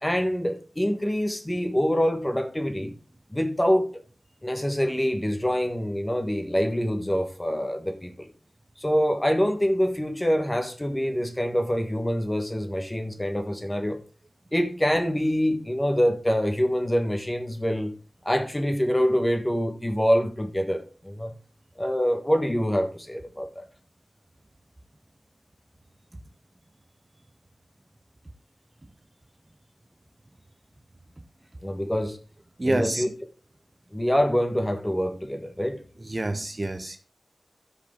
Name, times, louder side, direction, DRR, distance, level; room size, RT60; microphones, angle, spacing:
voice 1, 0.0-3.0 3.3-4.0 4.4-8.3 8.8-14.0 14.5-18.0 18.2-21.3 21.8-23.6 31.6-32.2 32.6-33.1 33.9-35.8, equal, 15° left, 1.4 m, -25 dB
voice 2, 32.6-33.0 36.1-37.0, right 1 dB, 30° right, 0.6 m, -27 dB
13.5 x 4.9 x 3.8 m
wide cardioid pair, 75°, 0 cm